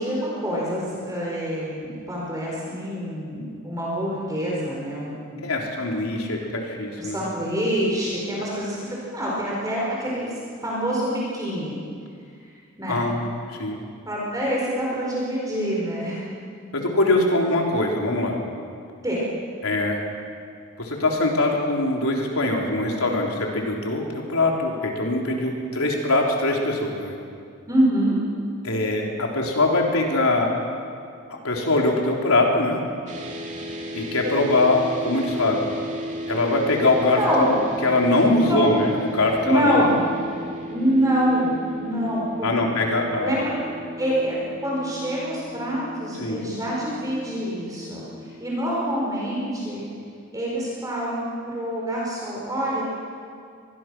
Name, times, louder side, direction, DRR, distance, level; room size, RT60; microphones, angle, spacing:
voice 1, 0.0-5.5 7.0-11.8 12.4-12.5 12.8-13.0 14.0-16.2 16.6-16.7 19.0-19.2 27.7-28.2 37.1-37.5 38.4-38.7 39.4-39.9 40.7-42.7 43.2-43.5 44.0-44.4 44.6-49.9 50.3-52.8, equal, 15° right, -5 dB, 4.5 m, -26 dB
voice 2, 5.4-7.2 12.9-13.8 16.7-18.4 19.6-20.0 20.8-27.2 28.6-30.5 31.3-32.8 33.9-35.7 36.3-39.9 42.4-43.4 46.2-46.4, left 2 dB, 90° left, 0 dB, 3.8 m, -22 dB
sound 1, 33.1-49.4, equal, 35° right, 2.5 m, -36 dB
25.0 x 20.5 x 6.2 m, 2.3 s
head